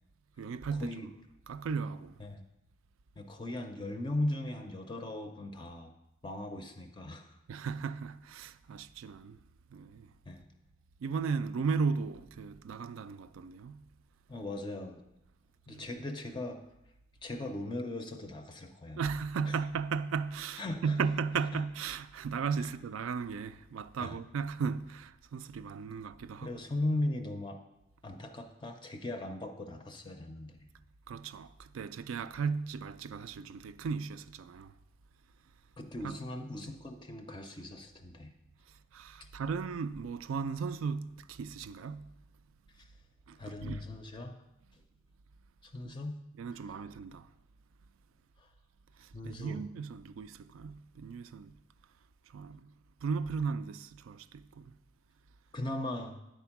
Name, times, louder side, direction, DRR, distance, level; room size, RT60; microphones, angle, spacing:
voice 1, 0.4-1.1 1.5-2.1 7.5-9.4 9.7-10.1 11.0-13.8 15.7-15.9 19.0-26.5 31.1-34.7 36.0-36.2 38.9-42.1 43.3-43.8 45.8-45.9 46.4-47.3 49.0-51.6 52.3-52.7 53.0-54.8, right 5 dB, 80° right, 0.4 m, -36 dB
voice 2, 3.2-5.9 6.2-7.4 10.3-10.4 14.3-15.0 15.7-16.6 17.2-19.0 19.5-19.6 20.6-21.0 21.5-21.6 22.6-22.7 24.0-24.2 26.4-27.6 28.0-30.7 35.8-38.3 39.2-39.3 42.8-42.9 43.4-44.4 45.6-46.2 46.5-46.6 48.4-48.5 49.1-49.7 55.5-56.2, left 1 dB, 25° left, 0.4 m, -38 dB
9.1 x 4.3 x 5.8 m
head